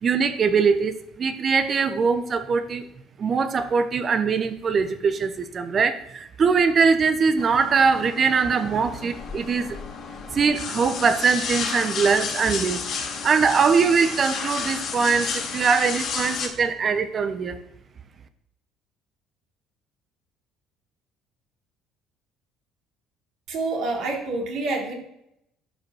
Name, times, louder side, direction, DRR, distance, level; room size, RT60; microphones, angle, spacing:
voice 1, 0.0-2.9 3.2-9.8 10.3-12.8 13.2-17.6, right 5 dB, 45° right, 10 dB, 1.2 m, -22 dB
sound 1, 7.4-16.5, left 5 dB, 55° left, 2.7 m, -32 dB
voice 2, 23.5-24.9, right 3 dB, 65° right, -1 dB, 3.3 m, -27 dB
11.5 x 5.3 x 6.5 m, 0.80 s
hypercardioid pair, 65°, 0 cm